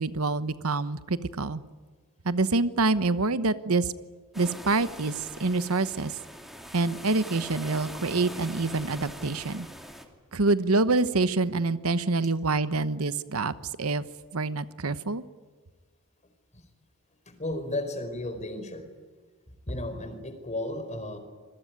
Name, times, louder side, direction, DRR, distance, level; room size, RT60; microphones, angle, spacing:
voice 1, 0.0-1.6 2.2-3.9 4.3-6.2 6.7-9.7 10.3-14.0 14.3-15.2, right 3 dB, 75° right, 13 dB, 1.1 m, -26 dB
sound 1, 4.3-10.1, equal, ahead, 2.7 m, -42 dB
voice 2, 17.3-18.9 19.7-21.2, left 1 dB, 35° left, 8 dB, 4.7 m, -34 dB
27.0 x 22.0 x 9.5 m, 1.4 s
head